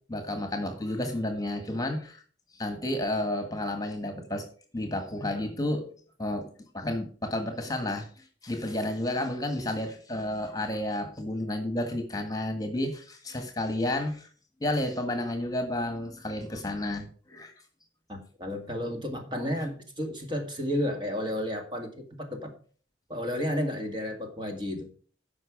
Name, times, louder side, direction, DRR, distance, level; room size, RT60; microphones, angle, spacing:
voice 1, 0.1-2.2 2.5-4.5 4.7-5.9 6.2-6.5 6.7-14.3 14.6-17.5, left 1 dB, 20° left, 6 dB, 1.6 m, -31 dB
voice 2, 18.1-22.5 23.1-24.9, equal, 25° right, 3 dB, 2.2 m, -32 dB
14.0 x 5.6 x 5.1 m, 0.42 s
head